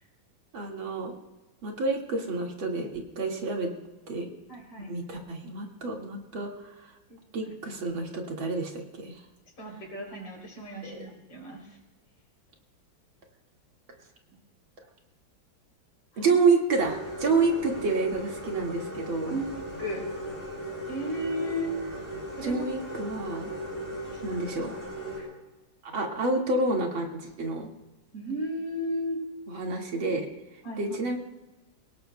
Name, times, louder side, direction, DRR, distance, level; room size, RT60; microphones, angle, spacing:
voice 1, 0.5-1.1 1.6-3.7 4.1-4.3 4.9-6.9 7.3-9.2 10.8-11.1 16.2-19.4 22.4-23.5 24.2-24.7 25.8-27.7 29.5-30.3 30.8-31.2, right 3 dB, 80° right, 0 dB, 2.8 m, -28 dB
voice 2, 4.5-4.9 7.1-7.2 9.6-11.6 16.1-16.3 19.2-19.5 19.8-20.1 20.9-21.7 22.4-22.7 23.9-24.4 25.2-25.3 28.1-29.2 30.0-30.1 30.6-30.8, equal, 65° left, -1 dB, 4.1 m, -34 dB
sound 1, 16.8-25.2, equal, 10° left, 7.2 m, -37 dB
29.5 x 17.5 x 2.2 m, 1.1 s
omnidirectional pair, 2.1 m